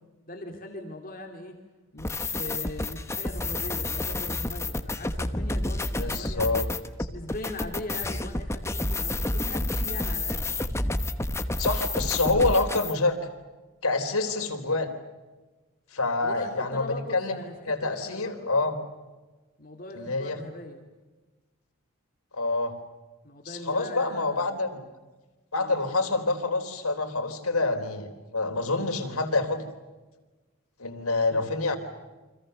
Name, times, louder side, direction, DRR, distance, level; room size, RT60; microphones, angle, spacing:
voice 1, 0.3-1.5 1.9-6.6 7.1-10.5 14.3-14.5 16.2-18.5 19.6-20.9 23.2-24.7 25.6-25.8 31.3-31.5, left 2 dB, 40° left, 3 dB, 2.8 m, -40 dB
sound 1, 2.0-12.9, left 2 dB, 10° left, 1.1 m, -30 dB
voice 2, 6.0-6.7 11.6-13.1 13.8-14.9 15.9-17.4 17.7-18.7 19.9-20.4 22.3-22.7 23.5-24.9 25.5-29.6 30.8-31.8, left 3 dB, 85° left, 5 dB, 3.9 m, -27 dB
29.0 x 25.5 x 6.8 m, 1.2 s
head